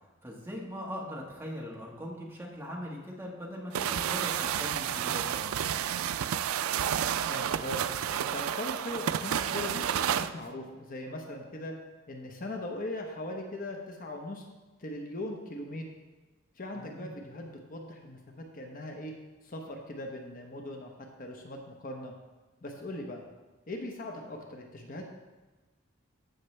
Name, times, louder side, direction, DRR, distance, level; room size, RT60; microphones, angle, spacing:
voice 1, 0.2-5.5 16.7-17.1, equal, 10° right, -3 dB, 1.5 m, -40 dB
sound 1, 3.7-10.3, right 9 dB, 85° right, 0.4 m, -30 dB
voice 2, 7.3-11.7 12.1-14.4 14.8-15.8 16.6-19.1 19.4-20.9 21.2-22.1 22.6-23.2 23.7-25.1, left 1 dB, 40° left, 2 dB, 0.9 m, -40 dB
14.5 x 5.9 x 3.3 m, 1.2 s
head